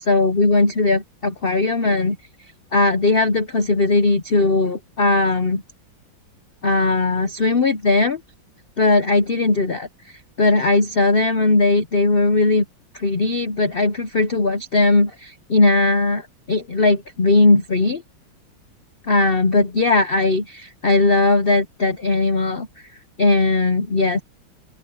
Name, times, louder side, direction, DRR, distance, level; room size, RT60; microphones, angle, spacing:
voice 1, 0.1-2.2 2.7-5.6 6.6-8.2 8.8-9.9 10.4-12.6 12.9-18.0 19.0-22.7 23.2-24.2, left 3 dB, 55° left, 0.6 m, -18 dB
open air
omnidirectional pair, 2.2 m